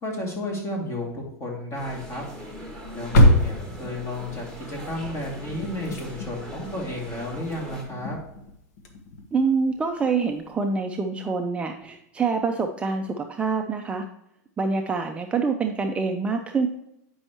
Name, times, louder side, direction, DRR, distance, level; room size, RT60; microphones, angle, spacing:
voice 1, 0.0-2.2 2.9-8.2, left 1 dB, 35° left, -1 dB, 2.5 m, -32 dB
sound 1, 1.7-7.8, equal, 5° left, 1.8 m, -40 dB
sound 2, 2.9-9.7 10.0-10.2 10.5-10.6, left 1 dB, 70° left, 1.4 m, -25 dB
voice 2, 9.3-14.1 14.6-16.7, right 4 dB, 15° right, 4 dB, 0.5 m, -26 dB
9.3 x 5.4 x 3.0 m, 0.81 s
supercardioid pair, 145°, 9 cm